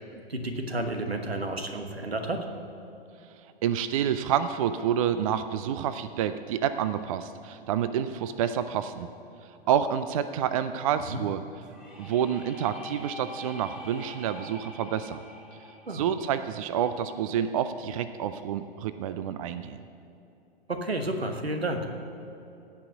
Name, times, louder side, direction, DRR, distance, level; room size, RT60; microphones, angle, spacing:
voice 1, 0.1-2.5 11.1-11.2 15.9-16.0 20.7-21.9, right 2 dB, 85° right, 6 dB, 1.3 m, -31 dB
voice 2, 3.6-9.1 9.7-11.4 12.0-15.2 15.9-19.8, right 9 dB, 35° right, 12 dB, 0.4 m, -28 dB
sound 1, 11.6-17.5, left 1 dB, 5° right, 1.4 m, -45 dB
16.5 x 5.5 x 6.7 m, 2.8 s
figure-of-eight pair, 110°, 30 cm